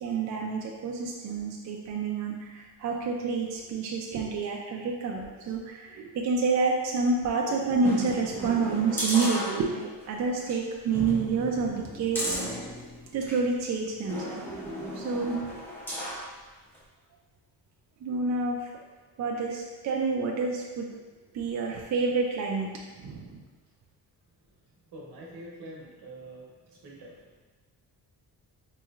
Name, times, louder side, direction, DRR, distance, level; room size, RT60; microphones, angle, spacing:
voice 1, 0.0-12.8 13.1-14.6 14.9-15.5 18.0-18.7 19.2-20.9 21.3-22.7 22.9-23.4, right 4 dB, 45° right, -1 dB, 0.4 m, -29 dB
sound 1, 7.8-10.0 10.4-10.6 10.9-13.4 14.1-16.3 16.7-16.8, equal, 5° left, 0.6 m, -34 dB
voice 2, 24.9-26.4 26.8-27.1, right 1 dB, 80° right, -3 dB, 1.1 m, -44 dB
4.3 x 3.0 x 2.4 m, 1.3 s
cardioid pair, 155°, 39 cm